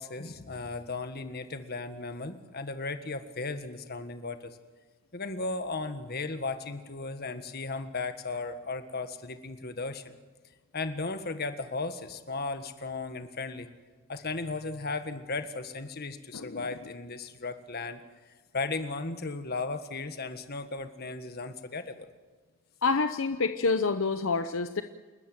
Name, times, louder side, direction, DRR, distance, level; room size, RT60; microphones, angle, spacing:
voice 1, 0.0-4.6 5.1-10.0 10.7-13.7 14.1-18.0 18.5-22.1, left 3 dB, 50° left, 9 dB, 1.6 m, -36 dB
voice 2, 22.8-24.8, left 4 dB, 70° left, 9 dB, 0.8 m, -27 dB
29.0 x 13.5 x 9.2 m, 1.3 s
head